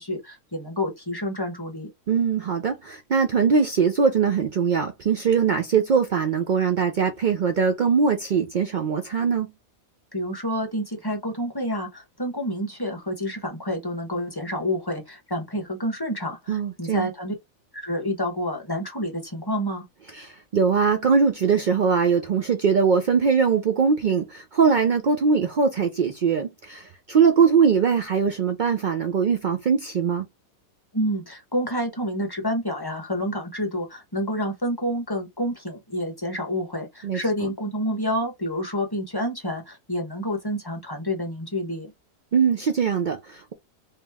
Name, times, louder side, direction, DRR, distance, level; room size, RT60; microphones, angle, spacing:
voice 1, 0.0-1.9 10.1-17.3 17.8-19.8 30.9-41.9, equal, 20° left, 0.8 m, -28 dB
voice 2, 2.1-9.5 16.5-17.1 20.1-30.3 37.0-37.2 42.3-43.5, right 6 dB, 85° right, 0.4 m, -21 dB
3.0 x 2.9 x 3.4 m
omnidirectional pair, 1.5 m